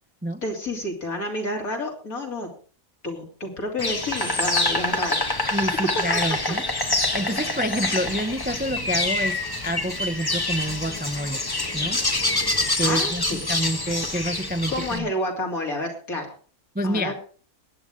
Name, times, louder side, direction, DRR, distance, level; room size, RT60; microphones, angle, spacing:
voice 1, 0.4-2.5 3.0-5.2 12.8-13.4 14.7-16.3 16.8-17.2, left 1 dB, 75° left, 3.5 m, -29 dB
Insect, 3.8-15.0, left 2 dB, 15° left, 1.1 m, -26 dB
voice 2, 5.5-6.6 7.1-11.4 11.7-12.1 12.8-15.1 16.7-17.2, equal, 15° right, 0.4 m, -28 dB
21.5 x 9.5 x 3.6 m
omnidirectional pair, 1.5 m